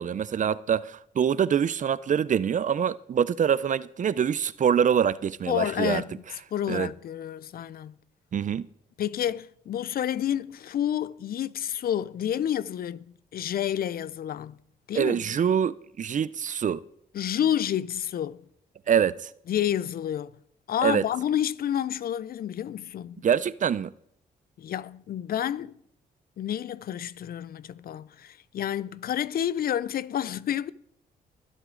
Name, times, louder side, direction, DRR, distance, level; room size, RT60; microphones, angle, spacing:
voice 1, 0.0-6.0 6.7-6.9 8.3-8.7 14.9-16.8 18.9-19.3 20.8-21.0 23.2-23.9, right 8 dB, 50° right, 0.5 m, -25 dB
voice 2, 5.5-6.2 6.5-7.9 9.0-13.0 13.3-14.6 14.9-15.2 17.1-18.4 19.5-20.3 20.7-23.2 24.6-25.8 26.4-30.7, left 10 dB, 60° left, 0.5 m, -29 dB
20.0 x 8.0 x 3.8 m
cardioid pair, 65°, 17 cm